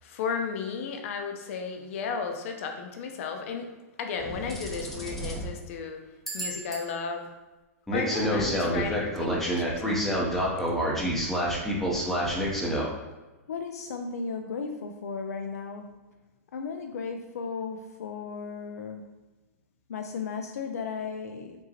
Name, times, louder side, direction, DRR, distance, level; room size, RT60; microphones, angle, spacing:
voice 1, 0.0-6.0 6.3-7.3 7.9-10.0, left 5 dB, 60° left, 4 dB, 0.7 m, -34 dB
sound 1, 4.2-5.5 6.3-6.8 7.9-12.9, equal, 5° left, 0.7 m, -28 dB
voice 2, 13.5-16.0 16.5-19.1 19.9-21.6, left 5 dB, 90° left, 4 dB, 0.4 m, -35 dB
5.2 x 2.8 x 2.8 m, 1.1 s
hypercardioid pair, 140°, 8 cm